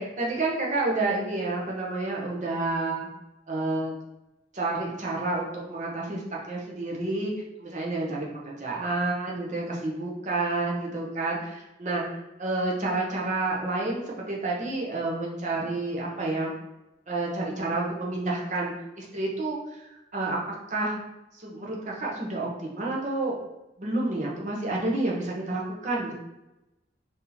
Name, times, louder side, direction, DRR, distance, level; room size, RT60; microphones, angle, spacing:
voice 1, 0.0-3.1 3.5-3.9 4.5-6.2 6.5-7.3 7.6-12.0 12.4-16.5 17.1-20.4 20.7-21.0 21.4-23.4 23.8-26.1, right 2 dB, 40° right, -3 dB, 0.8 m, -29 dB
2.9 x 2.7 x 3.8 m, 0.97 s
head